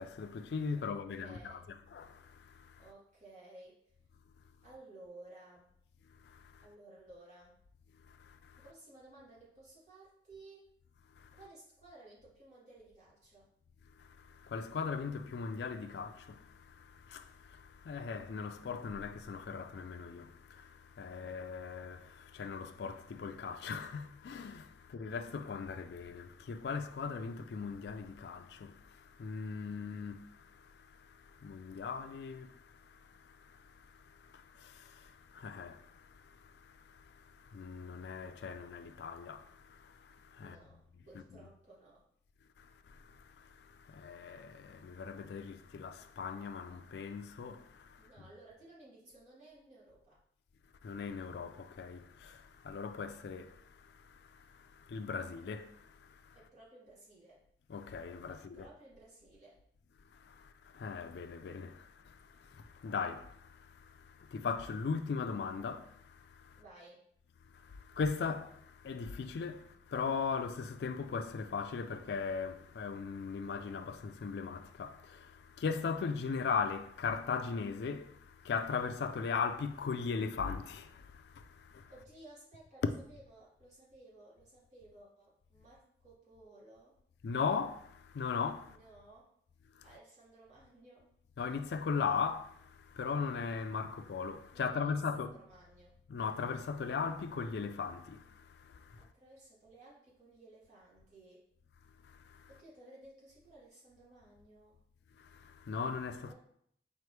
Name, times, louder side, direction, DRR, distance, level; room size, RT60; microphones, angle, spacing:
voice 1, 0.0-1.6 1.9-2.8 6.2-6.7 8.1-8.6 11.2-11.3 14.0-40.6 41.4-41.5 42.6-48.3 50.8-56.4 57.7-58.7 60.1-66.6 67.5-81.9 87.2-88.8 89.8-89.9 91.4-95.3 96.1-99.1 102.0-102.5 105.2-106.3, left 5 dB, 70° left, 0.3 m, -39 dB
voice 2, 0.7-1.6 2.8-3.8 4.6-5.7 6.6-7.5 8.6-10.6 11.4-13.5 40.4-42.0 48.0-50.2 56.3-57.4 58.3-59.6 66.6-67.0 81.9-87.0 88.7-89.3 89.8-91.1 94.5-95.9 99.0-101.4 102.5-104.8 106.3-106.4, right 2 dB, 40° right, 1.6 m, -57 dB
4.2 x 3.0 x 3.2 m
head